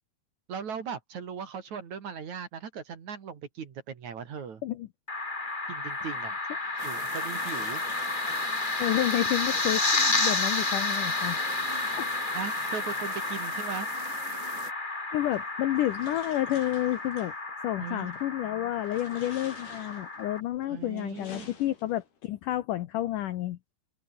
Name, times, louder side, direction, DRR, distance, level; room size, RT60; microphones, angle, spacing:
voice 1, 0.5-4.6 5.7-6.4 6.8-7.8 12.3-13.9 17.8-18.1 20.6-21.5, right 7 dB, 45° right, 3.3 m, -38 dB
sound 1, 5.1-20.4, left 3 dB, 30° left, 0.9 m, -31 dB
sound 2, 6.6-9.2 11.2-12.8 14.2-14.3 15.3-17.3 18.0-18.4 18.8-20.3 20.8-22.2, left 6 dB, 60° left, 6.9 m, -51 dB
sound 3, 6.8-14.7, right 7 dB, 75° right, 6.6 m, -44 dB
voice 2, 8.8-11.4 12.0-12.1 15.1-17.3 17.6-23.6, left 14 dB, 85° left, 1.8 m, -30 dB
open air
omnidirectional pair, 5.1 m